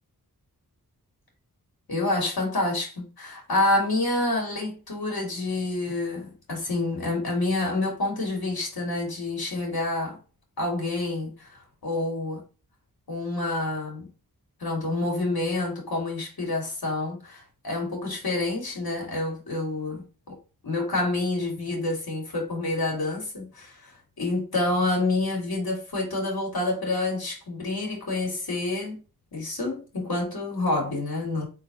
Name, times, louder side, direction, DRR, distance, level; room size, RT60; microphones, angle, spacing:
voice 1, 1.9-10.2 10.6-12.4 13.1-14.1 14.6-20.1 20.7-23.9 24.2-29.0 29.3-31.5, left 2 dB, 75° left, 2.3 m, -28 dB
4.1 x 3.8 x 2.8 m
cardioid pair, 50°, 37 cm